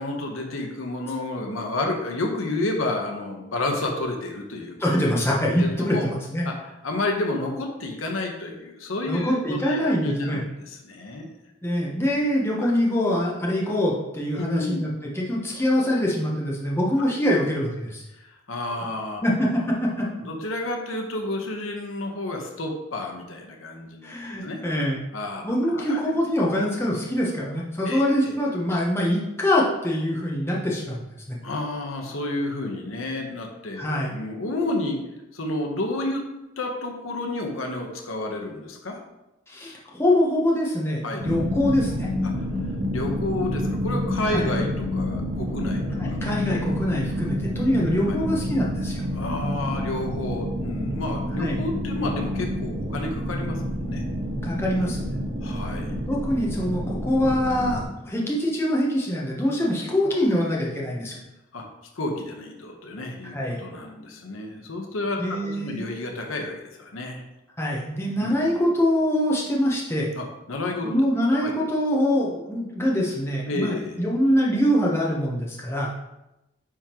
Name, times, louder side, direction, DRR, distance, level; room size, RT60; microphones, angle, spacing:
voice 1, 0.0-4.8 5.6-6.0 6.4-11.3 12.6-12.7 14.4-14.9 17.0-17.1 18.1-19.2 19.6-24.1 24.4-24.6 25.1-26.0 26.7-27.0 27.8-28.4 31.4-35.0 35.3-36.3 36.6-39.0 41.0-41.2 42.2-42.5 42.9-46.2 48.1-48.2 49.1-54.0 55.4-56.0 60.0-60.2 61.5-61.7 61.9-67.2 68.2-68.5 70.1-70.9 71.4-71.5 73.5-74.0, left 2 dB, 90° left, 2 dB, 1.0 m, -31 dB
voice 2, 4.8-6.5 9.1-10.4 11.6-18.0 19.2-19.5 19.8-20.1 24.0-25.0 25.4-31.0 31.3-31.4 33.8-34.1 39.5-42.1 44.3-44.4 46.0-49.0 51.4-51.6 54.4-55.0 56.1-61.2 63.3-63.6 65.2-65.9 67.6-70.1 70.8-75.9, equal, 10° left, -4 dB, 0.9 m, -24 dB
sound 1, 41.2-57.8, equal, 75° right, 1.5 m, -28 dB
9.6 x 3.6 x 3.0 m, 0.93 s
head